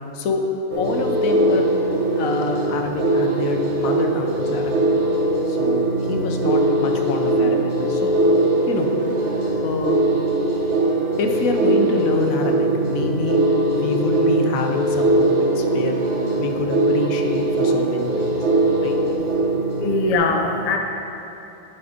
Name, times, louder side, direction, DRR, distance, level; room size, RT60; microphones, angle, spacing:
sound 1, 0.7-20.1, right 2 dB, 55° right, 1.3 m, -21 dB
voice 1, 0.8-1.7 2.2-4.8 5.5-5.8 6.1-8.2 8.7-8.9 9.6-10.0 11.2-13.4 13.7-16.0 16.4-18.1 18.8-19.0, left 3 dB, 75° left, 4 dB, 1.1 m, -26 dB
voice 2, 19.8-20.8, left 3 dB, 45° left, 2 dB, 0.5 m, -21 dB
11.5 x 4.2 x 4.9 m, 2.9 s
omnidirectional pair, 1.5 m